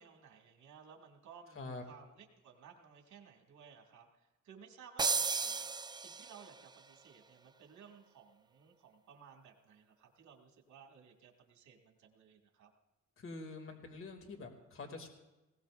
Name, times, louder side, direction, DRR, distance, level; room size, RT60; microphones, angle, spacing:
voice 1, 0.0-12.7, right 6 dB, 70° right, 2 dB, 2.3 m, -58 dB
sound 1, 5.0-6.6, right 4 dB, 15° right, 0.4 m, -34 dB
voice 2, 13.2-15.1, left 3 dB, 45° left, 4 dB, 2.5 m, -46 dB
19.5 x 17.5 x 2.6 m, 1.1 s
cardioid pair, 90°, 30 cm